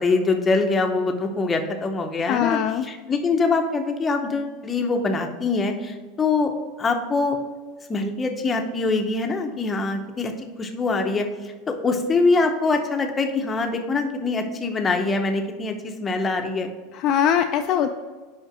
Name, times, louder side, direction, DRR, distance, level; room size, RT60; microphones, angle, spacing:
voice 1, 0.0-6.5 6.8-7.4 7.9-11.3 11.7-16.7, left 3 dB, 15° left, 5 dB, 0.7 m, -24 dB
voice 2, 2.2-2.8 16.9-17.9, left 9 dB, 40° left, 5 dB, 0.3 m, -21 dB
5.5 x 5.0 x 6.1 m, 1.4 s
supercardioid pair, 150°, 0 cm